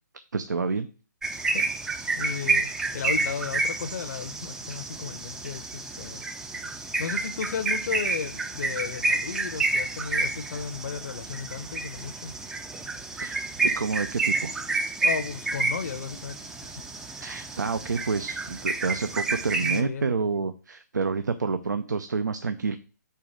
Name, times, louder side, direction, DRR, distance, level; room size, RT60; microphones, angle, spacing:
voice 1, 0.3-0.9 13.1-14.5 17.2-22.8, right 4 dB, 80° right, 0.5 m, -29 dB
sound 1, 1.2-19.8, right 3 dB, 5° right, 0.4 m, -29 dB
voice 2, 2.2-6.2 7.0-12.3 15.0-16.8 19.6-20.1, left 6 dB, 55° left, 0.7 m, -34 dB
5.1 x 4.5 x 5.0 m
figure-of-eight pair, 135°, 10 cm